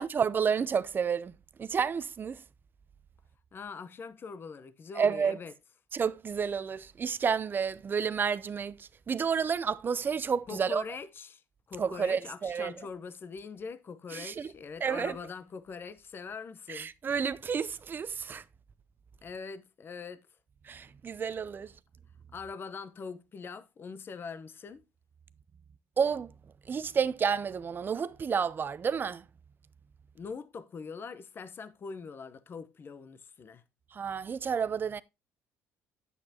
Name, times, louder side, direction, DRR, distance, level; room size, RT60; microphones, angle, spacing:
voice 1, 0.0-1.3 1.6-2.4 5.0-5.4 5.9-10.8 11.8-12.7 14.1-14.5 14.8-15.2 16.7-18.4 20.7-21.7 26.0-26.3 26.7-29.2 33.9-35.0, right 6 dB, 35° right, 0.6 m, -30 dB
voice 2, 3.5-5.5 10.5-11.4 11.7-16.9 19.2-20.3 22.3-24.8 30.1-33.6, left 5 dB, 35° left, 0.9 m, -42 dB
9.8 x 8.2 x 2.8 m
cardioid pair, 100°, 6 cm